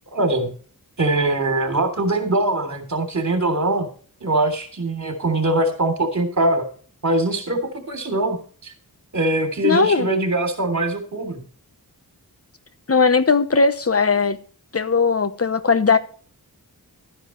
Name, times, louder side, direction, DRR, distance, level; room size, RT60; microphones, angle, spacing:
voice 1, 0.1-0.5 1.0-3.9 4.2-6.7 7.0-7.6 7.9-8.4 8.6-8.7 9.1-11.4, right 2 dB, 50° right, 3.3 m, -22 dB
voice 2, 9.6-10.1 12.9-14.4 14.7-16.0, left 4 dB, 40° left, 1.1 m, -18 dB
13.0 x 10.0 x 3.2 m
wide cardioid pair, 105°, 37 cm